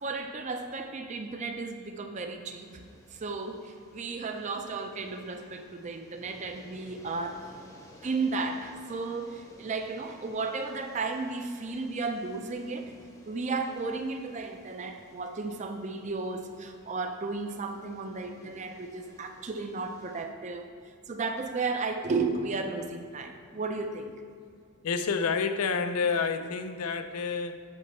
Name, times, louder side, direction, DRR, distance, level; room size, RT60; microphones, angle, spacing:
voice 1, 0.0-7.5 8.0-12.9 13.3-20.6 21.1-24.1, right 3 dB, 30° right, 6 dB, 0.4 m, -34 dB
sound 1, 2.5-20.2, left 1 dB, 15° left, 0.7 m, -56 dB
voice 2, 24.8-27.6, left 5 dB, 75° left, 9 dB, 0.5 m, -29 dB
8.5 x 5.4 x 3.1 m, 2.2 s
head